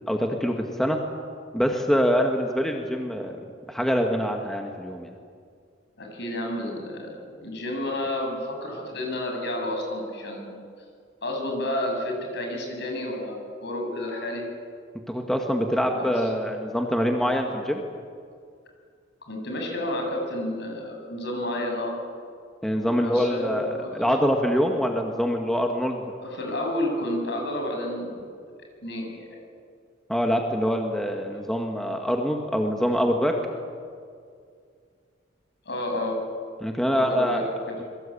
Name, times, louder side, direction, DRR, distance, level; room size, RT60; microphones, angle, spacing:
voice 1, 0.1-1.0 1.5-3.4 3.7-5.1 15.1-17.8 22.6-26.0 30.1-33.3 36.6-37.5, equal, ahead, 2 dB, 1.7 m, -24 dB
voice 2, 6.0-10.6 11.2-14.4 15.9-16.3 19.3-21.9 23.0-23.9 26.2-28.2 28.8-29.4 35.7-36.2 36.9-37.7, left 1 dB, 60° left, 2 dB, 7.3 m, -30 dB
26.5 x 23.0 x 8.6 m, 2.2 s
head